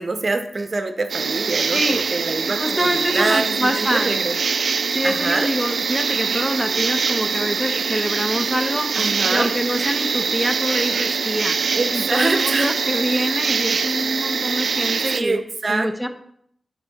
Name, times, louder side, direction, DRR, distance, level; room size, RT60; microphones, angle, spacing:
voice 1, 0.0-4.3 5.0-5.5 8.9-9.5 11.7-12.7 15.1-16.1, right 3 dB, 50° right, 7 dB, 0.7 m, -25 dB
sound 1, 1.1-15.2, right 5 dB, 80° right, 0.4 m, -23 dB
voice 2, 2.5-4.1 4.9-9.0 9.3-11.6 11.9-15.4 15.7-16.1, equal, 5° left, 7 dB, 0.5 m, -25 dB
6.0 x 5.3 x 4.0 m, 0.68 s
cardioid pair, 60°, 0 cm